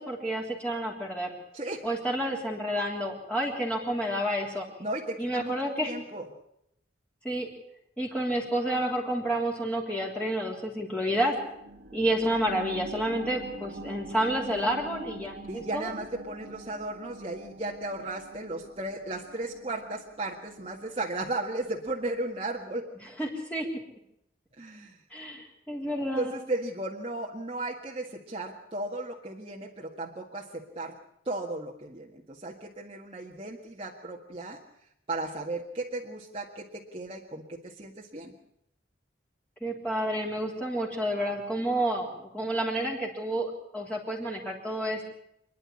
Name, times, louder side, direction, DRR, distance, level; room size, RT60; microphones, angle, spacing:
voice 1, 0.0-1.3 1.8-4.6 5.2-5.9 7.2-7.5 8.0-11.4 11.9-15.9 23.0-23.7 25.1-26.3 39.6-45.1, right 1 dB, 5° left, -2 dB, 3.4 m, -30 dB
voice 2, 1.5-1.8 4.8-5.5 5.8-6.3 15.5-22.9 24.6-25.0 26.1-30.9 31.2-34.6 35.1-38.3, right 2 dB, 30° right, -2 dB, 1.8 m, -35 dB
sound 1, 11.1-22.2 22.6-22.7, right 2 dB, 50° right, 2.2 m, -45 dB
27.0 x 11.0 x 9.9 m, 0.76 s
head